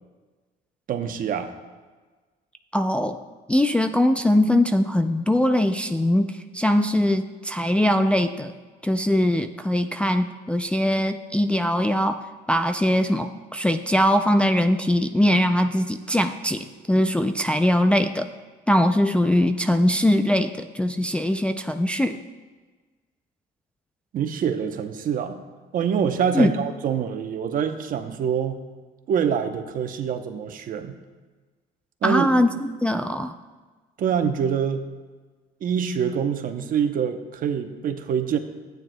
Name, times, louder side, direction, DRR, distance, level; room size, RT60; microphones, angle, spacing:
voice 1, 0.9-1.5 24.1-25.4 25.7-28.6 29.1-30.9 32.0-32.3 34.0-34.8 35.6-38.4, right 7 dB, 55° right, 7 dB, 0.8 m, -25 dB
voice 2, 2.7-3.2 3.5-8.5 8.8-18.3 18.7-22.2 26.3-26.5 32.0-33.3, left 1 dB, 5° left, 5 dB, 0.3 m, -21 dB
13.5 x 9.1 x 2.2 m, 1.3 s
cardioid pair, 110°, 17 cm